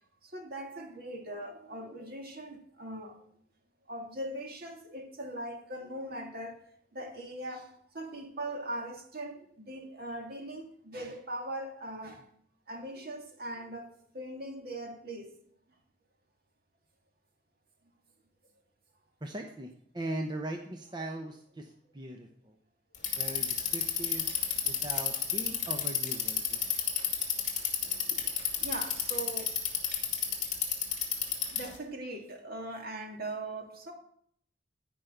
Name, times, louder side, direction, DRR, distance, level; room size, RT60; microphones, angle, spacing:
voice 1, 0.2-3.2 3.9-6.6 6.9-12.2 12.7-15.4 24.4-24.6 27.8-29.6 31.1-33.9, right 1 dB, 55° right, 2.2 m, -41 dB
voice 2, 19.2-21.7 21.9-22.3 23.2-24.3 24.7-26.6, right 1 dB, 25° right, 0.9 m, -39 dB
Bicycle, 22.9-31.8, left 8 dB, 40° left, 2.4 m, -30 dB
15.0 x 5.4 x 6.6 m
head